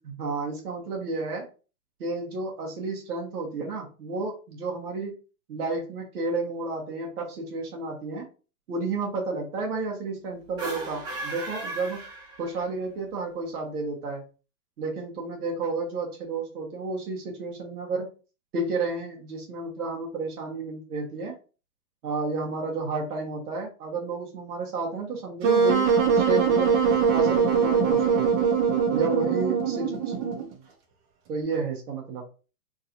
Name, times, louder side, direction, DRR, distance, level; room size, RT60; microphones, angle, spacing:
voice 1, 0.0-1.4 2.0-5.1 5.5-8.2 8.7-12.0 12.4-14.2 14.8-18.1 18.5-21.3 22.0-26.7 27.1-28.3 28.9-29.9 30.1-30.3 31.3-32.2, right 3 dB, 65° right, -2 dB, 1.6 m, -31 dB
sound 1, 10.5-12.8, right 2 dB, 10° right, 0.4 m, -36 dB
Wind instrument woodwind instrument, 25.4-30.5, right 6 dB, 45° right, 1.1 m, -22 dB
3.9 x 2.8 x 2.6 m, 0.34 s
hypercardioid pair, 115°, 48 cm